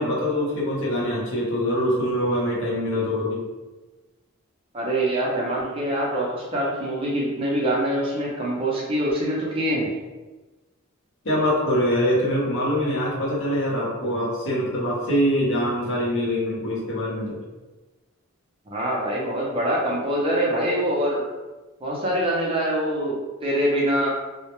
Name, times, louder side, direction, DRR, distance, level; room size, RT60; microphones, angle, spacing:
voice 1, 0.0-3.4 11.2-17.4, equal, 65° left, -5 dB, 0.8 m, -24 dB
voice 2, 4.7-9.9 18.7-21.2 21.8-23.2 23.4-24.1, right 1 dB, 25° right, -4 dB, 0.5 m, -24 dB
2.1 x 2.1 x 2.9 m, 1.2 s
head